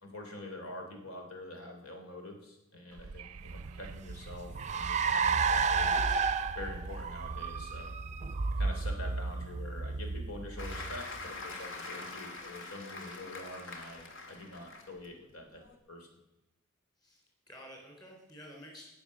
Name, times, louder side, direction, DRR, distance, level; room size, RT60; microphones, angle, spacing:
voice 1, 0.0-6.2 6.5-7.9 8.5-16.2, left 2 dB, 80° left, 2 dB, 3.3 m, -46 dB
Wind / Subway metro underground, 2.9-7.9, right 4 dB, 85° right, 0.5 m, -48 dB
Car, 3.5-11.3, right 5 dB, 35° right, 0.5 m, -32 dB
Applause, 10.6-15.1 15.5-15.7, left 3 dB, 60° left, 2.0 m, -44 dB
voice 2, 17.0-18.9, equal, 20° left, -1 dB, 4.1 m, -51 dB
18.5 x 7.1 x 6.4 m, 0.93 s
head